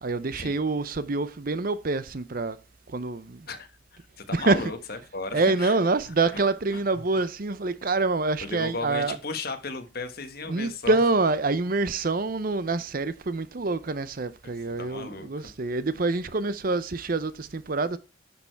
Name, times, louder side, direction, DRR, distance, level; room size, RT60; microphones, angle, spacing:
voice 1, 0.0-2.6 2.9-3.5 4.3-4.7 5.3-9.2 10.5-18.0, right 3 dB, 45° right, 0.6 m, -26 dB
voice 2, 4.2-5.7 6.3-6.4 6.7-6.8 7.1-7.2 8.4-11.0 14.4-14.5 14.8-15.5, left 3 dB, 50° left, 1.5 m, -35 dB
11.5 x 6.7 x 4.6 m
head